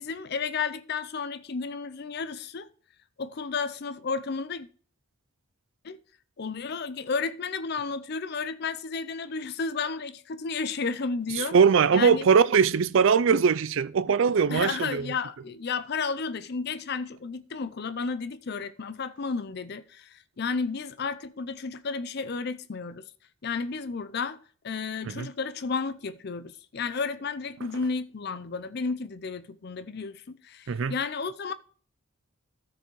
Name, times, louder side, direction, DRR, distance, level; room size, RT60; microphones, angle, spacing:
voice 1, 0.0-2.7 3.2-4.7 5.8-6.0 6.4-11.5 11.9-12.3 14.5-23.0 23.4-24.4 24.6-31.5, left 4 dB, 50° left, 0.5 m, -32 dB
voice 2, 11.4-15.1 25.1-25.3 30.7-30.9, right 6 dB, 60° right, 0.4 m, -21 dB
13.5 x 4.9 x 4.6 m
head